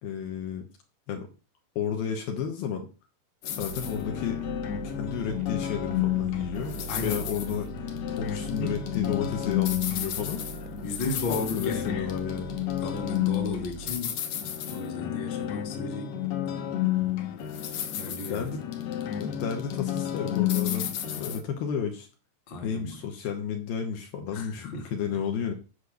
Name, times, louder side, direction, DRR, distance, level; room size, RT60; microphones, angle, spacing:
voice 1, 0.0-0.6 1.1-1.3 1.8-2.9 3.5-4.4 4.8-10.4 11.3-12.6 18.3-18.6 19.2-22.1 22.6-25.5, left 7 dB, 70° left, 2.8 m, -32 dB
sound 1, 3.4-21.4, left 11 dB, 90° left, 1.5 m, -31 dB
sound 2, 3.6-14.0, right 10 dB, 80° right, 2.9 m, -42 dB
voice 2, 6.9-7.3 8.6-8.8 10.8-12.1 12.8-14.2 14.7-16.2 18.0-18.6 22.5-23.0 24.3-25.2, left 3 dB, 40° left, 1.9 m, -35 dB
9.8 x 4.5 x 6.5 m
omnidirectional pair, 4.8 m